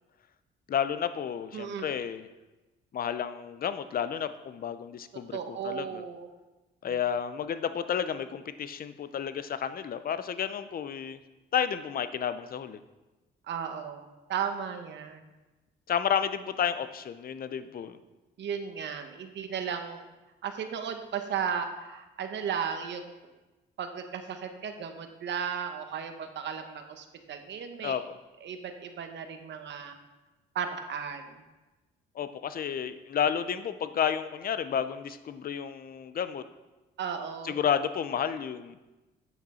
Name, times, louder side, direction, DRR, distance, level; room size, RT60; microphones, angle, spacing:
voice 1, 0.7-2.3 2.9-6.0 6.8-11.2 11.5-12.8 15.9-18.0 27.8-28.2 32.2-36.4 37.4-38.8, left 8 dB, 50° left, 12 dB, 0.6 m, -31 dB
voice 2, 1.5-1.9 5.3-6.3 6.9-7.0 13.5-15.2 18.4-20.1 20.4-23.1 23.8-28.0 28.4-30.0 30.5-31.4 37.0-37.6, right 7 dB, 65° right, 6 dB, 1.1 m, -35 dB
9.2 x 6.0 x 4.3 m, 1.1 s
cardioid pair, 90°, 20 cm